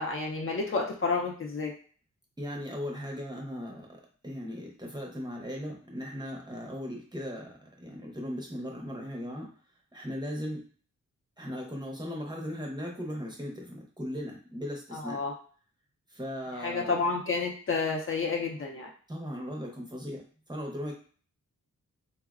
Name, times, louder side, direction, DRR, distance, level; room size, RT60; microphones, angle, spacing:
voice 1, 0.0-1.7 14.9-15.3 16.6-18.9, left 4 dB, 45° left, 0 dB, 0.5 m, -30 dB
voice 2, 2.4-3.9 4.2-9.5 9.9-10.6 11.4-15.2 16.1-17.0 19.1-20.2 20.5-20.9, equal, 15° right, -1 dB, 0.6 m, -37 dB
3.8 x 2.0 x 2.3 m, 0.43 s
wide cardioid pair, 155°, 31 cm